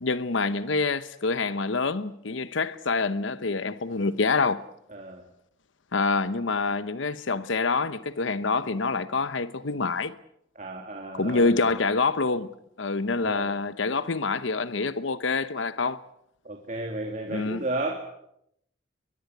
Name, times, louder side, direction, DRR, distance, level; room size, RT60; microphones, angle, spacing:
voice 1, 0.0-4.6 5.9-10.2 11.1-16.0 17.3-17.6, left 4 dB, 80° left, 0.9 m, -26 dB
voice 2, 4.9-5.3 10.6-11.6 13.2-13.5 16.4-17.9, right 2 dB, 40° right, 2.6 m, -33 dB
22.5 x 22.5 x 8.0 m
head